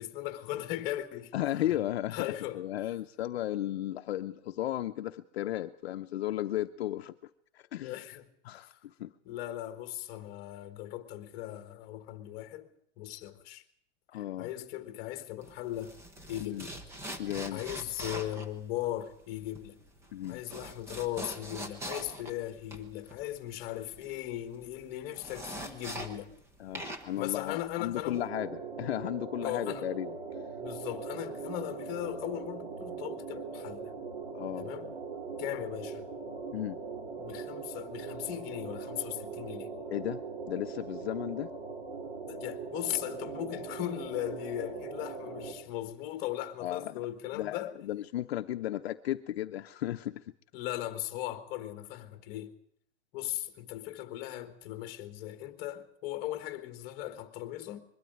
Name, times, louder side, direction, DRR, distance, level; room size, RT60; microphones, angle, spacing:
voice 1, 0.0-1.3 2.1-2.6 7.8-8.3 9.2-12.7 13.0-13.6 14.4-15.9 16.3-16.7 17.5-19.8 20.3-26.3 27.2-28.2 29.4-29.9 30.6-33.9 34.6-34.9 35.4-36.1 37.2-39.7 42.3-47.7 50.5-52.5 53.1-57.8, left 14 dB, 25° left, 1.4 m, -38 dB
voice 2, 1.3-2.3 2.5-7.2 7.5-8.0 8.4-9.1 14.1-14.5 16.4-16.7 17.2-17.6 20.1-20.4 26.6-30.1 34.3-34.7 36.5-36.8 39.9-40.2 40.5-41.5 46.6-47.0 47.3-50.2, left 13 dB, 60° left, 0.8 m, -35 dB
sound 1, 15.4-26.5 26.7-28.3, right 1 dB, 5° right, 0.8 m, -43 dB
sound 2, 28.1-45.5, right 5 dB, 45° right, 4.4 m, -41 dB
22.0 x 13.0 x 9.4 m
supercardioid pair, 175°, 36 cm